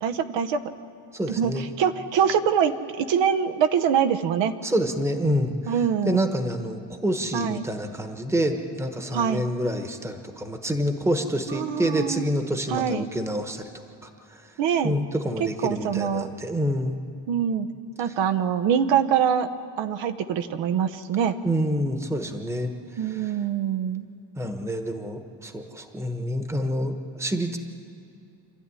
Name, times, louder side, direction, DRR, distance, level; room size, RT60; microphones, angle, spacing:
voice 1, 0.0-0.6 1.4-4.5 5.7-6.3 7.3-7.6 9.1-9.5 11.5-12.3 12.7-13.1 14.6-14.9 15.6-16.3 17.3-17.7 18.0-19.5 19.8-21.4 23.0-24.0, right 8 dB, 75° right, 9 dB, 1.1 m, -24 dB
voice 2, 1.1-1.7 4.6-5.7 6.1-14.5 14.8-17.0 21.4-23.3 24.4-27.6, equal, 5° right, 6 dB, 1.1 m, -27 dB
27.0 x 13.0 x 9.8 m, 2.6 s
cardioid pair, 160°, 45 cm